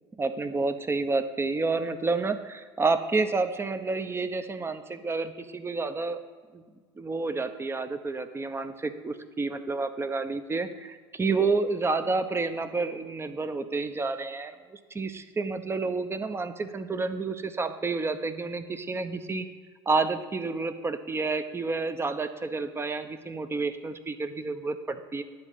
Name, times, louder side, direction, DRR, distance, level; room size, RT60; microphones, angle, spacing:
voice 1, 0.1-6.2 6.5-6.6 7.0-19.5 19.9-25.2, right 3 dB, 20° right, 10 dB, 0.8 m, -29 dB
10.5 x 4.0 x 7.5 m, 1.5 s
hypercardioid pair, 75°, 14 cm